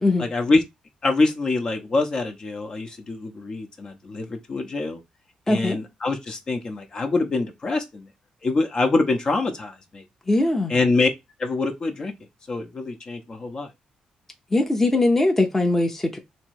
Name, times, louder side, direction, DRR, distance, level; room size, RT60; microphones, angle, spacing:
voice 1, 0.2-0.6 1.0-5.0 5.5-8.1 8.4-10.0 10.7-11.1 11.4-12.1 12.5-13.7, left 3 dB, 40° left, 1.0 m, -25 dB
voice 2, 5.5-5.8 10.3-10.7 14.5-16.2, left 2 dB, 15° left, 0.9 m, -21 dB
3.2 x 3.2 x 4.8 m
cardioid pair, 115°, 2 cm